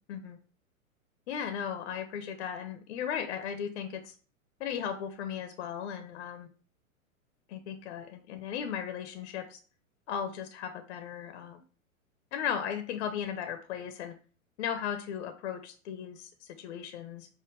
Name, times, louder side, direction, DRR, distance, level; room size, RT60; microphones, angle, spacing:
voice 1, 1.3-4.1 4.6-6.5 7.5-9.6 10.1-11.6 12.3-14.2 14.6-17.3, left 8 dB, 50° left, 8 dB, 0.6 m, -36 dB
5.2 x 2.1 x 3.2 m, 0.39 s
figure-of-eight pair, 100°, 42 cm